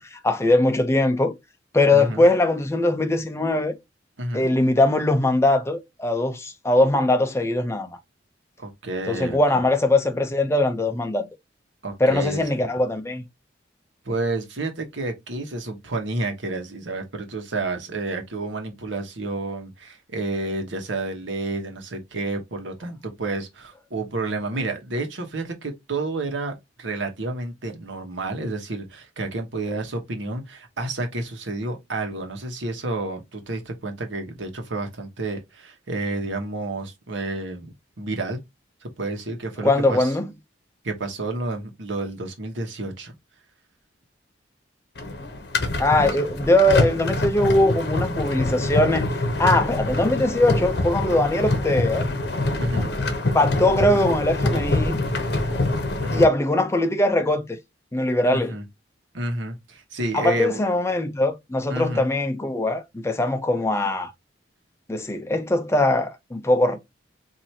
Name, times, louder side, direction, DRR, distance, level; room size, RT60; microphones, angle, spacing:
voice 1, 0.1-1.3 1.7-3.8 4.3-7.9 9.1-11.3 12.0-13.2 39.6-40.3 45.8-49.1 49.4-52.1 53.3-55.1 56.1-57.6 57.9-58.5 60.1-64.1 64.9-66.8, left 1 dB, 15° left, 0.6 m, -21 dB
voice 2, 1.9-2.2 4.2-4.5 8.6-9.6 11.8-12.4 14.0-38.4 38.8-40.1 40.8-43.1 46.0-46.2 52.6-52.9 56.0-56.3 58.2-58.6 59.1-60.6 61.7-62.1, right 2 dB, 85° right, 1.2 m, -30 dB
sound 1, 44.9-56.2, left 2 dB, 60° left, 0.9 m, -25 dB
4.5 x 2.8 x 2.7 m
head